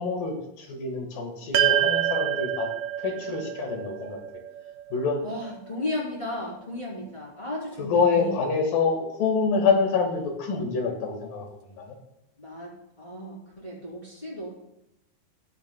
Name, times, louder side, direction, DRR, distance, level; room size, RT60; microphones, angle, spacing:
voice 1, 0.0-2.7 3.0-4.2 4.9-5.2 7.8-12.0, left 5 dB, 70° left, 3 dB, 3.3 m, -26 dB
sound 1, 1.5-6.0, right 12 dB, 80° right, 2.4 m, -27 dB
voice 2, 5.2-8.6 12.4-14.5, left 1 dB, 15° left, -5 dB, 2.7 m, -35 dB
13.5 x 9.3 x 2.3 m, 0.84 s
omnidirectional pair, 4.3 m